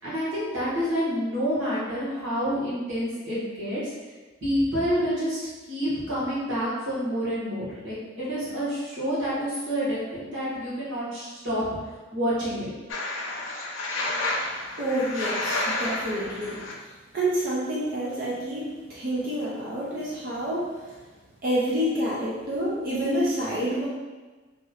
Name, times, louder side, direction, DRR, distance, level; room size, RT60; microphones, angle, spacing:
voice 1, 0.0-3.8 4.4-5.4 5.7-11.6 12.1-12.7, equal, 80° right, -9 dB, 1.5 m, -28 dB
sound 1, 12.9-16.7, left 2 dB, 75° left, 0.6 m, -30 dB
voice 2, 14.8-16.6 17.1-20.7 21.4-23.9, equal, 45° right, -6 dB, 0.5 m, -28 dB
3.0 x 2.9 x 2.4 m, 1.3 s
head